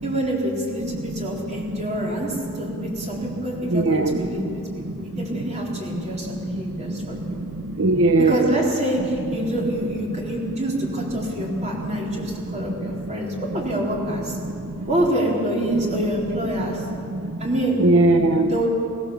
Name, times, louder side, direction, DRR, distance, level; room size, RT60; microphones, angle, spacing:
voice 1, 0.0-4.4 5.0-7.2 8.2-14.4 14.9-16.8 17.4-17.8 18.5-18.7, right 1 dB, 30° right, -2 dB, 4.0 m, -26 dB
voice 2, 3.7-4.2 6.5-6.6 7.8-8.5 12.8-12.9 17.1-17.2 17.8-18.5, right 2 dB, 65° right, 6 dB, 0.9 m, -18 dB
23.0 x 16.5 x 7.2 m, 2.7 s
head